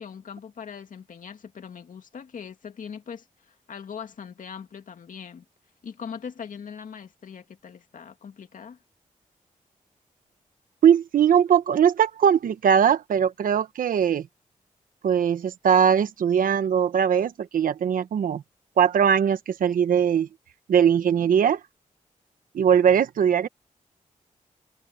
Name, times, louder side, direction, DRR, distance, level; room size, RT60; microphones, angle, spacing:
voice 1, 0.0-5.4 5.8-8.8, left 7 dB, 70° left, 2.5 m, -41 dB
voice 2, 10.8-14.3 15.0-18.4 18.8-20.3 20.7-21.6 22.5-23.5, right 8 dB, 85° right, 1.2 m, -20 dB
cardioid pair, 65°, 14 cm